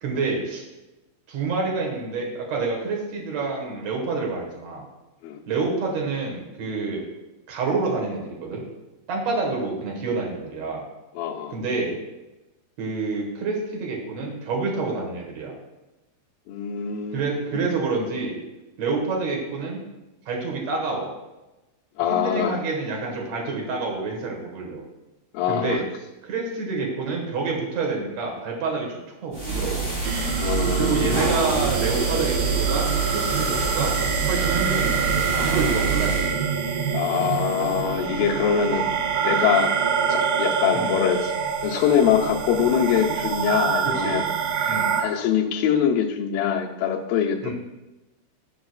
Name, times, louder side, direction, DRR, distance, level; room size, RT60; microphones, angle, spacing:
voice 1, 0.0-0.6 1.3-4.9 5.5-7.1 7.5-8.6 9.1-10.8 11.5-12.0 12.8-15.6 17.1-18.4 18.8-19.8 20.3-21.1 22.1-24.8 25.5-25.8 26.2-29.9 30.7-33.9 34.3-36.3 40.7-41.0 43.8-44.2 44.7-45.0 47.4-47.5, right 3 dB, 55° right, -1 dB, 2.2 m, -28 dB
voice 2, 11.2-11.6 16.5-17.2 17.5-17.7 22.0-22.6 25.3-25.8 30.4-31.9 36.9-38.9 39.2-39.8 40.1-41.3 41.6-44.2 44.6-47.4, left 8 dB, 75° left, -1 dB, 2.4 m, -24 dB
sound 1, 29.3-36.3, right 4 dB, 25° right, 2.1 m, -26 dB
sound 2, 30.0-45.0, right 6 dB, 80° right, 2.8 m, -26 dB
13.0 x 5.0 x 2.4 m, 1.0 s
omnidirectional pair, 4.5 m